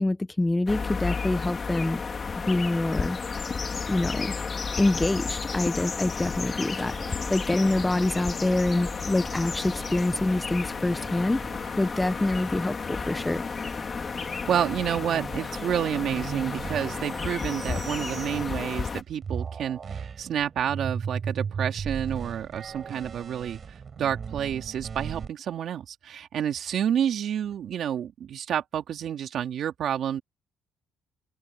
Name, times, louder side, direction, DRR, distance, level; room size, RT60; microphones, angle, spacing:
voice 1, 0.0-2.0 2.5-3.2 3.9-4.3 4.7-11.4 11.8-13.4, left 2 dB, 10° left, 1.0 m, -26 dB
sound 1, 0.7-19.0, left 5 dB, 30° left, 3.2 m, -32 dB
sound 2, 6.7-19.0 19.2-25.3, right 6 dB, 40° right, 6.0 m, -39 dB
voice 2, 14.2-30.2, right 9 dB, 60° right, 2.7 m, -29 dB
open air
cardioid pair, 115°, 0 cm